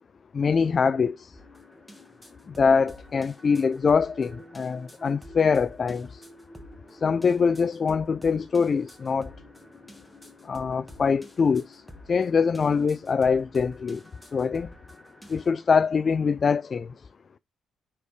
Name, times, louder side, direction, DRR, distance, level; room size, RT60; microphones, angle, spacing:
voice 1, 0.3-1.4 2.5-6.2 6.9-9.3 10.4-11.8 12.1-14.0 14.3-14.7 15.3-17.1, left 5 dB, 40° left, 0.4 m, -24 dB
sound 1, 1.3-15.5, equal, ahead, 1.6 m, -49 dB
9.6 x 4.3 x 3.2 m
cardioid pair, 90°, 0 cm